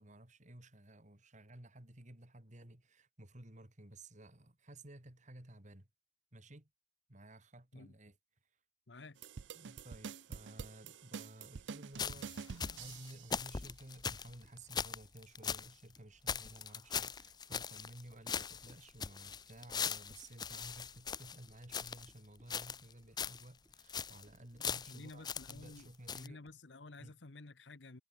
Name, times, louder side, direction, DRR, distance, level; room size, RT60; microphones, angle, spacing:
voice 1, 0.0-5.9 6.3-6.7 7.1-8.2 9.5-12.5 12.7-26.4 27.0-27.1, right 1 dB, 45° right, 2.9 m, -55 dB
voice 2, 8.9-9.2 24.9-28.0, left 3 dB, 80° left, 1.2 m, -53 dB
sound 1, 9.2-13.4, right 6 dB, 85° right, 0.5 m, -47 dB
Run, 11.4-26.7, equal, 15° right, 6.1 m, -75 dB
sound 2, 12.0-15.7 16.0-16.1 16.3-18.0 18.3-22.1 22.5-22.9 23.2-23.4 23.7-24.2 24.6-25.8 26.1-26.3, left 6 dB, 25° left, 0.5 m, -40 dB
head